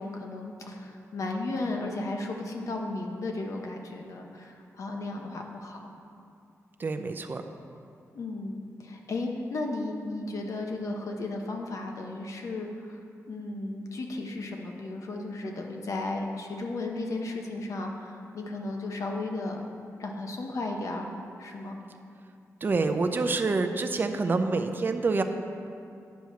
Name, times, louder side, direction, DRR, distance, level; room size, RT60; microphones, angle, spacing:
voice 1, 0.0-5.9 8.1-13.0 13.3-19.6 20.0-21.1 21.4-21.8, left 2 dB, 65° left, 2 dB, 1.0 m, -34 dB
voice 2, 6.8-7.4 22.6-25.2, right 3 dB, 35° right, 6 dB, 0.5 m, -27 dB
9.2 x 4.8 x 6.8 m, 2.5 s
wide cardioid pair, 135°, 6 cm